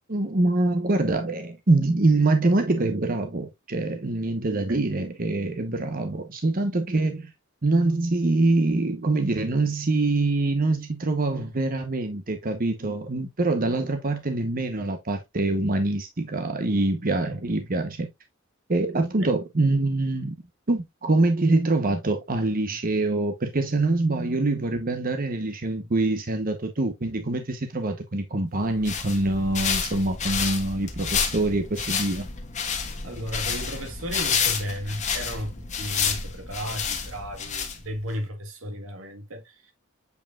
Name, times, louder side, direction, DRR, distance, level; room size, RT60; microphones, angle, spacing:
voice 1, 0.1-7.3 7.6-18.1 18.7-20.4 20.7-32.3, right 2 dB, 45° right, 1.0 m, -24 dB
sound 1, 28.6-38.1, left 6 dB, 35° left, 1.3 m, -29 dB
voice 2, 33.0-35.5 35.8-39.4, equal, 80° right, 1.6 m, -34 dB
8.2 x 4.8 x 2.4 m
head